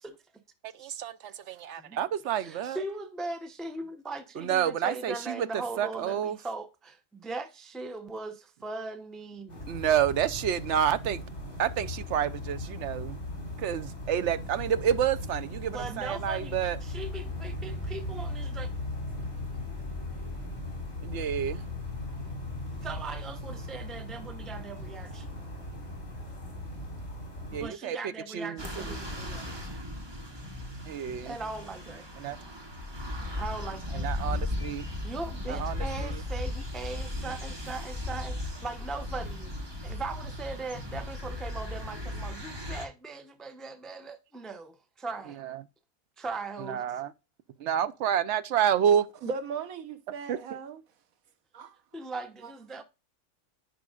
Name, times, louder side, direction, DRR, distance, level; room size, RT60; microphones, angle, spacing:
voice 1, 0.6-2.8 4.4-6.4 9.7-11.2 11.6-13.2 13.6-16.8 21.0-21.6 27.5-28.0 28.3-29.0 30.9-31.4 32.2-32.4 33.9-34.9 35.5-36.2 45.4-45.6 46.6-47.1 47.6-49.1 50.3-50.4, right 9 dB, 65° right, 0.9 m, -29 dB
voice 2, 2.3-9.6 15.7-18.7 22.8-25.3 27.5-29.7 31.2-32.1 33.4-34.1 35.0-39.5 39.8-45.4 46.2-46.8 51.9-52.8, right 3 dB, ahead, 0.5 m, -39 dB
sound 1, 9.5-27.7, left 2 dB, 50° left, 3.8 m, -38 dB
sound 2, 28.6-42.9, left 1 dB, 20° right, 1.3 m, -36 dB
voice 3, 49.2-50.8 51.5-52.0 52.4-52.5, right 5 dB, 90° right, 1.3 m, -38 dB
10.0 x 5.1 x 2.4 m
omnidirectional pair, 1.4 m